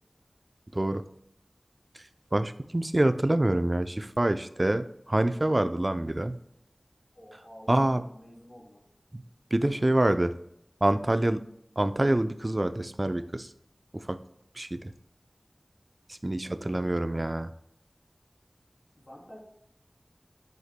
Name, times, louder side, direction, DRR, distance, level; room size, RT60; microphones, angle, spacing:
voice 1, 0.7-1.0 2.3-6.3 7.7-8.0 9.1-9.2 9.5-10.3 10.8-11.5 11.8-13.5 13.9-14.2 14.6-14.9 16.2-17.5, right 1 dB, 40° right, 10 dB, 0.5 m, -26 dB
voice 2, 7.1-8.8 16.5-16.9 19.0-19.4, equal, 75° left, -3 dB, 3.2 m, -50 dB
9.5 x 7.8 x 2.2 m, 0.77 s
wide cardioid pair, 40°, 0 cm